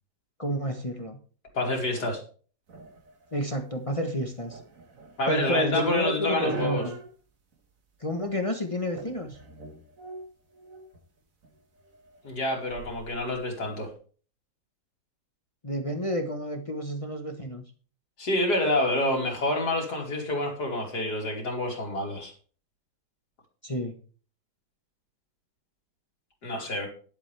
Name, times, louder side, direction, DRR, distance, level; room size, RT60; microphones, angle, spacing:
voice 1, 0.4-1.2 3.3-4.6 5.3-7.0 8.0-9.4 15.6-17.6 23.6-24.0, equal, 20° left, 5 dB, 1.0 m, -30 dB
voice 2, 1.5-2.2 5.2-6.8 12.2-13.9 18.2-22.3 26.4-26.9, left 1 dB, 70° left, -1 dB, 3.6 m, -27 dB
sound 1, 2.7-7.1 7.5-7.6 8.2-8.6 8.9-11.0 11.4-13.9, right 3 dB, 50° right, 2.0 m, -45 dB
11.0 x 11.0 x 3.4 m, 0.41 s
omnidirectional pair, 1.8 m